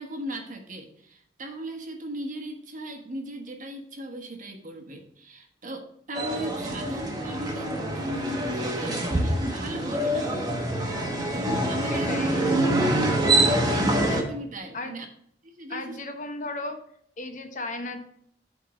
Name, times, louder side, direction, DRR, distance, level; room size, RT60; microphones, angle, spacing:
voice 1, 0.0-10.4 10.8-12.1 14.0-15.1 15.4-16.0, right 1 dB, 50° right, 4 dB, 1.2 m, -37 dB
sound 1, 6.1-14.2, right 1 dB, 25° right, 1.1 m, -25 dB
voice 2, 11.9-12.5 14.7-14.9 15.7-16.8 17.2-18.0, left 2 dB, 45° left, 7 dB, 0.8 m, -35 dB
7.7 x 3.7 x 6.1 m, 0.68 s
head